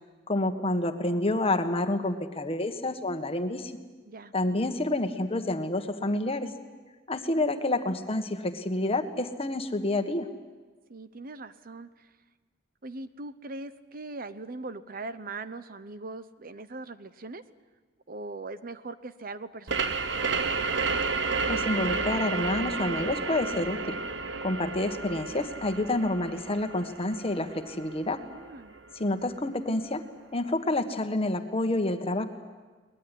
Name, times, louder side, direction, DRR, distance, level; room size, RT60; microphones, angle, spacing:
voice 1, 0.3-3.7 4.3-6.5 7.1-10.3 21.4-24.0 24.4-28.2 28.9-30.0 30.3-32.2, left 2 dB, 30° left, 7 dB, 1.6 m, -28 dB
voice 2, 10.9-12.1 12.8-17.4 18.1-20.0 24.8-25.1 28.2-28.8, right 3 dB, 50° right, 13 dB, 0.9 m, -40 dB
sound 1, 19.7-29.0, right 4 dB, 70° right, 1.1 m, -31 dB
22.5 x 20.0 x 10.0 m, 1.3 s
head